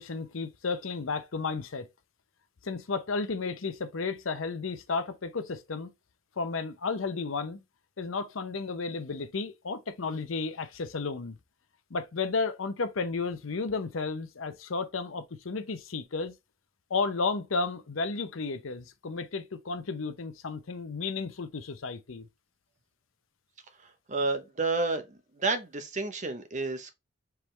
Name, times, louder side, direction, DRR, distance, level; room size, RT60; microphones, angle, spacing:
voice 1, 0.0-1.9 2.6-5.9 6.4-7.6 8.0-11.4 11.9-16.3 16.9-22.3, left 4 dB, 85° left, 0.7 m, -33 dB
voice 2, 23.8-26.9, right 3 dB, 40° right, 0.8 m, -31 dB
4.6 x 3.5 x 3.1 m
head